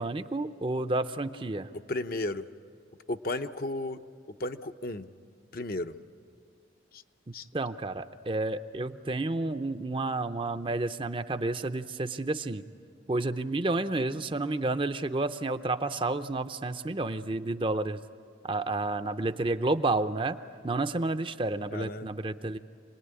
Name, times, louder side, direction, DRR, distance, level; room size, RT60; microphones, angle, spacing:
voice 1, 0.0-1.7 7.5-12.6 13.1-18.0 18.5-20.4 20.6-22.6, right 2 dB, 25° right, 10 dB, 0.6 m, -30 dB
voice 2, 1.9-2.5 3.1-4.0 4.4-5.1 5.5-6.0 6.9-7.0 7.3-7.5 21.7-22.1, left 2 dB, 50° left, 8 dB, 0.7 m, -33 dB
27.5 x 19.5 x 9.7 m, 2.2 s
head